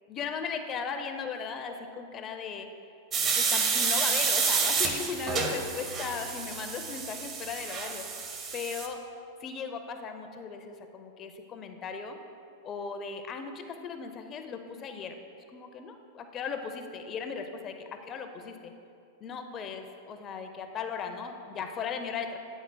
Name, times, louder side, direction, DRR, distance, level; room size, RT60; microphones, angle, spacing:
voice 1, 0.1-2.7 3.3-8.1 8.5-9.0 9.4-12.2 12.6-15.1 15.5-18.7 19.2-22.4, left 6 dB, 30° left, 6 dB, 0.6 m, -37 dB
sound 1, 3.1-8.9, right 5 dB, 30° right, 0.7 m, -29 dB
9.8 x 7.9 x 2.2 m, 2.5 s
supercardioid pair, 135°, 0 cm